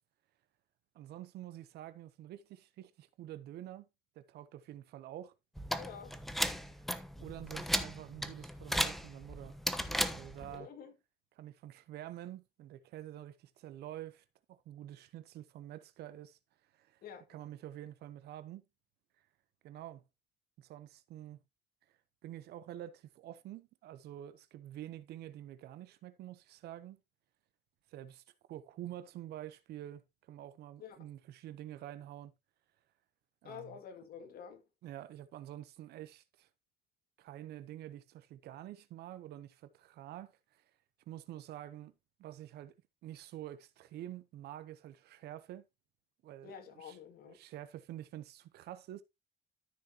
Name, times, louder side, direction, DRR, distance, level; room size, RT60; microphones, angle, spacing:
voice 1, 0.9-3.9 4.1-5.3 6.7-6.9 7.2-9.6 10.1-10.7 11.3-16.4 16.7-17.0 17.3-18.6 19.6-20.0 20.6-21.4 22.2-27.0 27.9-28.2 28.5-32.3 33.4-33.8 34.8-36.5 37.2-40.6 41.1-41.9 42.2-42.7 43.0-45.7 46.2-47.0 47.2-49.0, right 12 dB, 75° right, 0.9 m, -48 dB
sound 1, 5.6-10.6, equal, ahead, 1.0 m, -36 dB
voice 2, 5.8-6.2 10.5-10.9 17.0-17.2 30.8-31.0 33.4-34.6 46.4-47.4, left 7 dB, 65° left, 2.4 m, -48 dB
13.5 x 6.3 x 2.9 m
cardioid pair, 110°, 17 cm